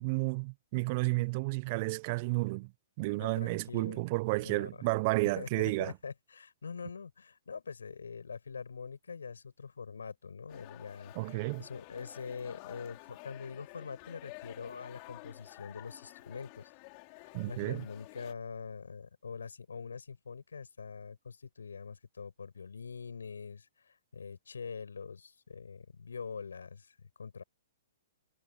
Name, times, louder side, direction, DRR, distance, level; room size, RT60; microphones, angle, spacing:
voice 1, 0.0-2.7 3.0-5.9 11.1-11.6 17.3-17.8, right 25 dB, 40° right, 0.8 m, -31 dB
voice 2, 3.2-4.0 4.4-4.8 5.4-16.7 17.2-27.4, left 5 dB, 80° left, 7.9 m, -44 dB
sound 1, 10.5-18.3, left 36 dB, 40° left, 6.0 m, -51 dB
hypercardioid pair, 125°, 0 cm